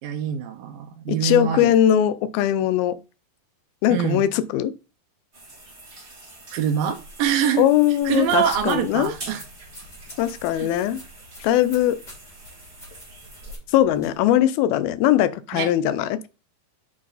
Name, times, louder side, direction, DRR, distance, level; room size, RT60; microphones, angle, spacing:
voice 1, 0.0-1.8 3.9-4.3 6.5-7.7 8.0-9.4 10.5-10.7 15.5-15.7, right 8 dB, 70° right, 2.5 m, -24 dB
voice 2, 1.1-3.0 3.8-4.7 7.6-9.1 10.2-11.0 11.4-12.0 13.7-16.3, left 12 dB, 80° left, 2.4 m, -20 dB
sound 1, 5.3-13.6, right 2 dB, 20° right, 2.1 m, -45 dB
sound 2, 8.0-14.3, equal, 15° left, 2.3 m, -46 dB
7.6 x 5.6 x 4.0 m
omnidirectional pair, 4.6 m